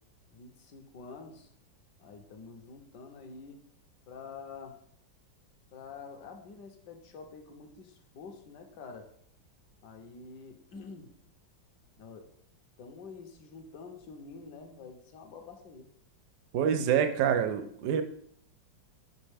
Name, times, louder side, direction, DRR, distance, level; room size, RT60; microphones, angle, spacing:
voice 1, 0.3-1.5 2.0-3.6 4.1-4.8 5.7-9.1 9.8-11.1 12.0-12.3 12.8-15.9, left 4 dB, 65° left, 4 dB, 1.3 m, -47 dB
voice 2, 16.5-18.0, right 8 dB, 70° right, 9 dB, 1.1 m, -26 dB
5.4 x 5.3 x 3.4 m, 0.64 s
omnidirectional pair, 2.1 m